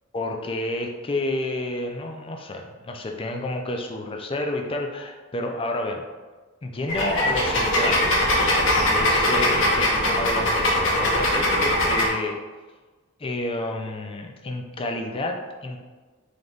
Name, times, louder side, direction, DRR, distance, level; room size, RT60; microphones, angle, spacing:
voice 1, 0.1-6.0 6.6-8.1 8.9-12.4 13.2-15.8, left 2 dB, 25° left, 3 dB, 0.4 m, -30 dB
sound 1, 6.9-12.1, left 1 dB, 65° left, 0.9 m, -21 dB
3.4 x 3.0 x 3.9 m, 1.3 s
head